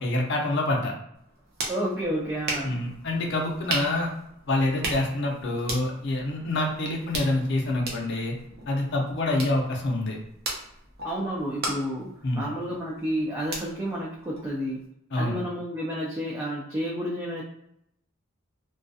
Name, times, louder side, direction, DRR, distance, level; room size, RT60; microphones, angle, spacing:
voice 1, 0.0-0.9 2.6-4.1 4.5-8.3 8.7-10.2 12.2-12.5 15.1-15.4, left 2 dB, 60° left, 0 dB, 0.6 m, -26 dB
sound 1, 1.1-14.9, right 2 dB, 50° right, 0.6 m, -38 dB
voice 2, 1.7-2.8 11.0-14.8 15.2-17.4, equal, 15° right, -5 dB, 0.3 m, -30 dB
2.3 x 2.2 x 2.6 m, 0.77 s
head